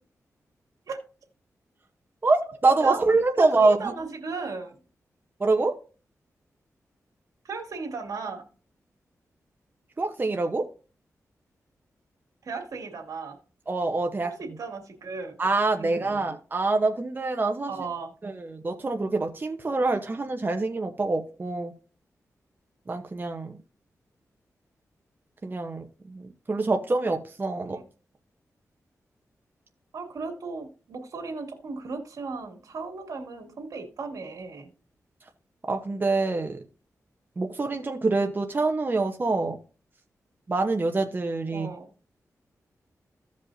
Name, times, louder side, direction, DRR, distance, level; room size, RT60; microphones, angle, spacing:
voice 1, 2.6-3.8 5.4-5.7 10.0-10.7 13.7-14.3 15.4-17.7 18.2-21.7 22.9-23.5 25.4-26.2 26.5-27.8 35.7-36.6 37.4-39.6 40.5-41.7, right 3 dB, 35° right, 4 dB, 1.0 m, -25 dB
voice 2, 3.4-4.8 7.4-8.5 12.4-13.4 14.2-15.4 15.8-16.2 17.7-18.1 27.6-27.9 29.9-34.7 41.5-41.9, right 4 dB, 80° right, 3 dB, 2.5 m, -36 dB
16.0 x 5.3 x 2.7 m, 0.36 s
cardioid pair, 80°, 6 cm